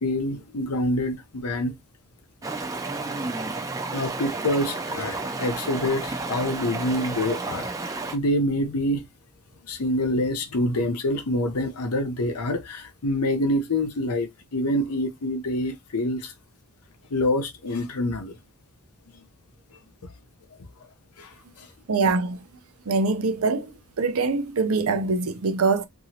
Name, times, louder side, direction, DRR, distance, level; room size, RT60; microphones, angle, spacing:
voice 1, 0.0-1.8 3.9-7.7 8.1-9.1 9.6-16.3 17.1-18.4 20.0-20.1 21.2-21.7, left 1 dB, 85° left, 0.7 m, -26 dB
Stream, 2.4-8.2, right 3 dB, 15° right, 0.4 m, -31 dB
voice 2, 21.9-22.4 22.9-23.7 24.0-25.9, right 4 dB, 70° right, 0.6 m, -23 dB
2.9 x 2.6 x 2.7 m
head